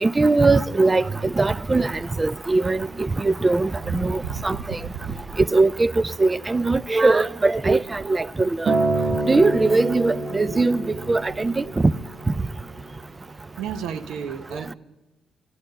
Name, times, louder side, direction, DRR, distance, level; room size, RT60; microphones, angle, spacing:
voice 1, 0.0-1.0 1.4-1.9 2.2-4.6 5.5-5.9 6.2-8.5 9.2-10.8 11.1-11.6, right 3 dB, 20° right, 0.4 m, -20 dB
voice 2, 3.8-4.6 4.9-5.2 13.6-14.7, right 7 dB, 85° right, 0.9 m, -32 dB
Acoustic guitar, 8.7-12.9 13.8-13.9, right 2 dB, 45° right, 1.2 m, -27 dB
11.5 x 10.5 x 7.6 m
cardioid pair, 90°, 0 cm